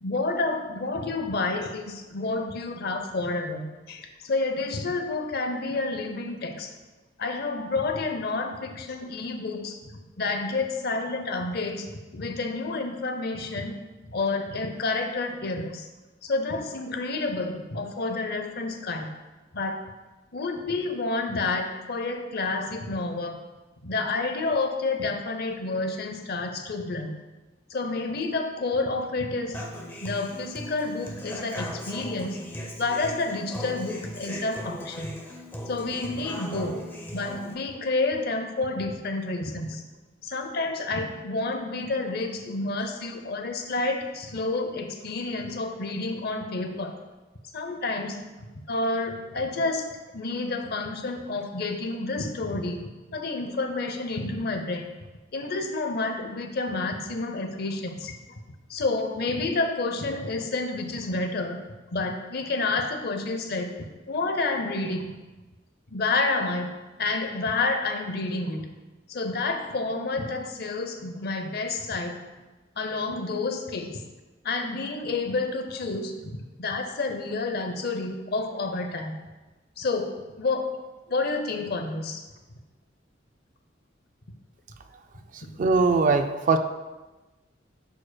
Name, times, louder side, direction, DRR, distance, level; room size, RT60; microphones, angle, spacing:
voice 1, 0.0-6.7 7.2-9.9 10.2-13.7 14.1-15.9 16.2-19.1 19.5-19.8 20.3-23.4 23.8-27.1 27.7-29.6 30.0-32.4 32.8-35.1 35.7-36.8 37.1-39.8 40.2-46.9 47.5-49.9 50.1-54.9 55.3-58.2 58.7-61.6 61.9-63.7 64.1-65.2 65.9-66.7 67.0-68.7 69.1-72.2 72.8-74.0 74.4-79.1 79.8-80.1 80.4-80.7 81.1-82.2 85.4-85.5, left 3 dB, 55° left, 5 dB, 0.7 m, -29 dB
Human voice / Acoustic guitar, 29.5-37.5, equal, 10° left, 0.7 m, -38 dB
voice 2, 85.3-86.6, right 4 dB, 45° right, 7 dB, 0.4 m, -22 dB
10.5 x 5.0 x 2.2 m, 1.2 s
head